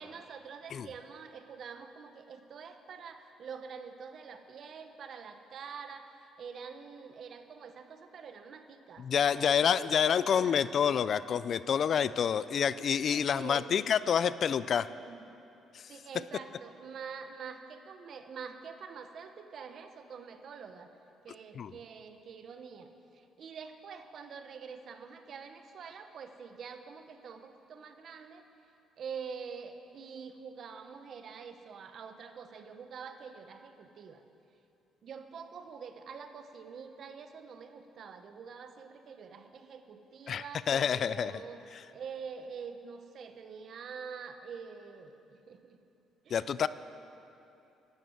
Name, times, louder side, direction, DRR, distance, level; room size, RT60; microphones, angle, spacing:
voice 1, 0.0-10.7 13.1-13.7 14.8-15.3 15.9-20.9 21.2-28.5 29.0-34.2 35.0-41.6 41.9-45.8 46.2-46.7, right 6 dB, 55° right, 7 dB, 1.1 m, -46 dB
voice 2, 9.0-14.9 15.7-15.8 21.6-21.7 40.3-41.4 46.3-46.7, left 8 dB, 50° left, 16 dB, 0.4 m, -28 dB
12.5 x 12.0 x 7.9 m, 2.8 s
cardioid pair, 110°, 0 cm